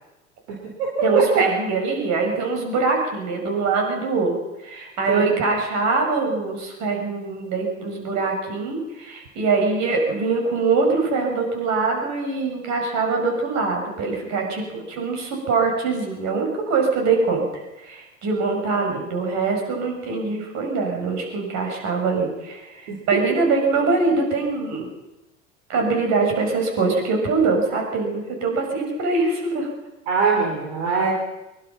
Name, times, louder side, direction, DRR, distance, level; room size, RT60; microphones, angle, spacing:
voice 1, 0.5-1.5 5.1-5.4 22.9-23.2 30.1-31.1, right 5 dB, 65° right, 0 dB, 4.4 m, -22 dB
voice 2, 1.0-4.4 4.6-17.5 17.8-24.9 25.7-29.7, right 4 dB, 45° right, 2 dB, 7.1 m, -23 dB
23.0 x 22.5 x 5.9 m, 1.0 s
figure-of-eight pair, 80°, 38 cm